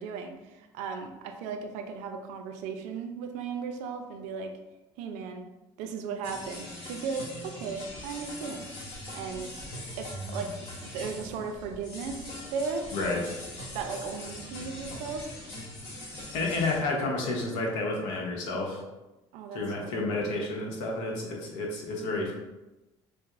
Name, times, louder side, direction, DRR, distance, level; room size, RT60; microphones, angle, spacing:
voice 1, 0.0-4.5 5.0-5.5 5.8-8.7 9.1-9.6 10.0-10.6 10.8-12.9 13.7-15.3 19.3-20.4, right 5 dB, 80° right, 5 dB, 0.4 m, -36 dB
sound 1, 6.2-16.8, left 1 dB, 65° left, 1.3 m, -41 dB
voice 2, 12.9-13.2 16.3-18.8 19.5-22.3, left 2 dB, 80° left, 0 dB, 0.8 m, -30 dB
4.6 x 2.1 x 2.4 m, 1.0 s
supercardioid pair, 90°, 12 cm